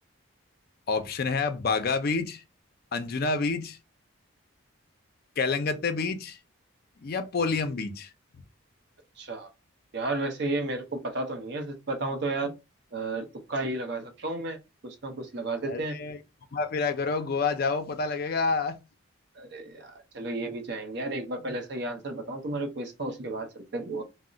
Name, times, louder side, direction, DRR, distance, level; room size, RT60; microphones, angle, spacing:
voice 1, 0.9-2.4 2.9-3.8 5.4-6.4 7.0-8.1 15.7-16.2 16.5-18.8, left 4 dB, 45° left, 0.4 m, -28 dB
voice 2, 9.2-9.5 9.9-12.5 12.9-14.6 14.8-16.0 19.4-24.0, right 2 dB, 55° right, 0.6 m, -33 dB
2.3 x 2.0 x 3.8 m
head